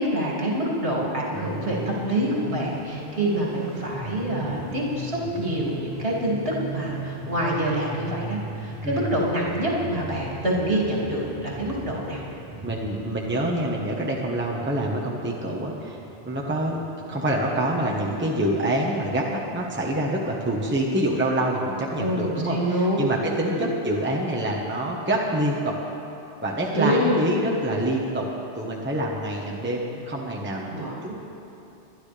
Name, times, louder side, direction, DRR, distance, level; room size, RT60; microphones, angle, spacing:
voice 1, 0.0-12.2 22.0-23.1 23.4-23.6 26.7-27.2 30.7-31.1, right 1 dB, 55° right, -4 dB, 2.7 m, -26 dB
sound 1, 1.3-20.9, right 1 dB, 35° right, 3.2 m, -39 dB
voice 2, 12.6-16.0 16.3-16.8 17.1-25.8 26.4-28.3 28.6-31.1, right 1 dB, 10° right, -3 dB, 1.1 m, -26 dB
22.0 x 11.5 x 3.4 m, 3.0 s
omnidirectional pair, 1.2 m